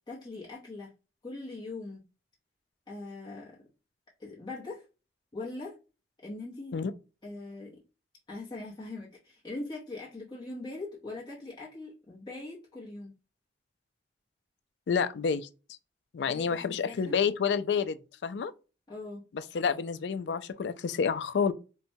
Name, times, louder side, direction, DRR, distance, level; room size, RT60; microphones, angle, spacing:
voice 1, 0.1-0.9 1.2-2.0 2.9-3.6 4.2-4.8 5.3-5.7 6.2-6.8 7.2-7.8 8.3-13.1 16.3-17.2 18.9-19.2, left 2 dB, 25° left, 0.8 m, -41 dB
voice 2, 14.9-15.5 16.1-18.5 19.3-21.5, left 6 dB, 80° left, 0.4 m, -29 dB
4.2 x 2.2 x 2.7 m
head